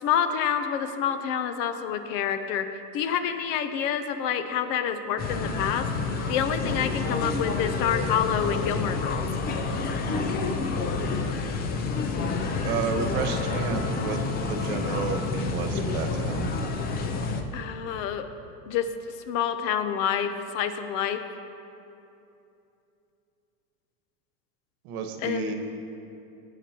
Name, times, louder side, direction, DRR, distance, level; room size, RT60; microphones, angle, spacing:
voice 1, 0.0-2.7 2.9-5.9 6.3-9.3 17.5-18.3 18.7-18.9 19.3-21.2 25.2-25.5, left 8 dB, 60° left, 9 dB, 0.8 m, -27 dB
sound 1, 5.2-17.4, left 4 dB, 20° left, 0.5 m, -29 dB
voice 2, 12.6-14.2 14.5-16.6 24.8-25.5, right 5 dB, 80° right, 5 dB, 1.4 m, -31 dB
17.5 x 8.5 x 2.9 m, 2.7 s
supercardioid pair, 145°, 44 cm